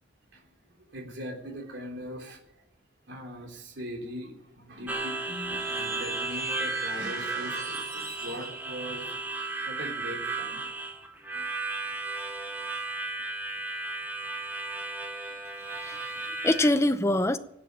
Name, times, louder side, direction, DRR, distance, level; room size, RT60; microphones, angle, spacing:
voice 1, 0.9-2.4 3.1-10.8 11.3-11.5, equal, 70° right, 1 dB, 3.5 m, -41 dB
Harmonica, 4.9-16.7, right 3 dB, 10° right, 1.7 m, -34 dB
sound 1, 5.5-8.6, right 5 dB, 50° right, 3.8 m, -43 dB
voice 2, 15.7-17.4, left 1 dB, 15° left, 10 dB, 0.7 m, -25 dB
20.0 x 7.7 x 8.8 m, 0.80 s
head